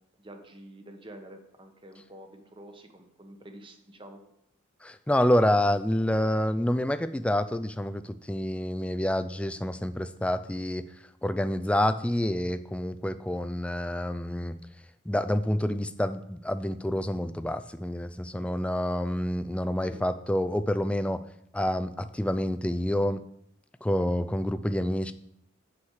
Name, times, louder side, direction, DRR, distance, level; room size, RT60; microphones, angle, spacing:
voice 1, 0.2-4.2 19.8-20.0, right 1 dB, 25° right, 5 dB, 1.1 m, -48 dB
voice 2, 4.8-10.8 11.2-14.6 15.1-21.2 21.5-23.2 23.8-25.1, left 1 dB, 5° left, 11 dB, 0.3 m, -28 dB
8.6 x 8.0 x 4.8 m, 0.74 s
head